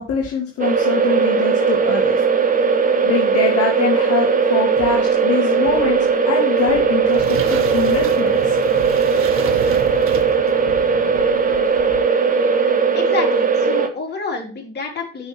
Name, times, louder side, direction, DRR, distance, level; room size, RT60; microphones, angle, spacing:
voice 1, 0.0-2.2 3.0-8.6, left 6 dB, 50° left, -1 dB, 2.1 m, -24 dB
sound 1, 0.6-13.9, right 5 dB, 30° right, 1.4 m, -18 dB
sound 2, 4.8-6.2 6.6-8.3 8.6-10.2 10.6-12.3 12.6-12.7, right 4 dB, 65° right, 2.9 m, -39 dB
sound 3, 6.6-11.5, right 8 dB, 45° right, 1.1 m, -32 dB
voice 2, 12.9-15.3, left 4 dB, 35° left, 0 dB, 3.3 m, -28 dB
6.2 x 6.1 x 5.9 m, 0.38 s
hypercardioid pair, 70°, 30 cm